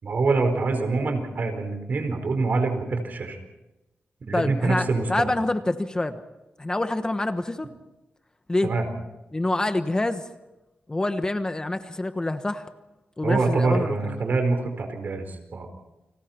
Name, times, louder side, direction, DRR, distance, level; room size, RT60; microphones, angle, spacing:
voice 1, 0.0-3.4 4.3-5.3 8.6-8.9 13.2-15.7, right 3 dB, 55° right, 6 dB, 4.7 m, -25 dB
voice 2, 4.3-6.2 6.6-7.7 8.5-8.7 9.3-10.2 10.9-12.7 13.2-14.2, left 2 dB, 20° left, 9 dB, 1.2 m, -26 dB
30.0 x 25.0 x 4.5 m, 0.99 s
wide cardioid pair, 105°, 4 cm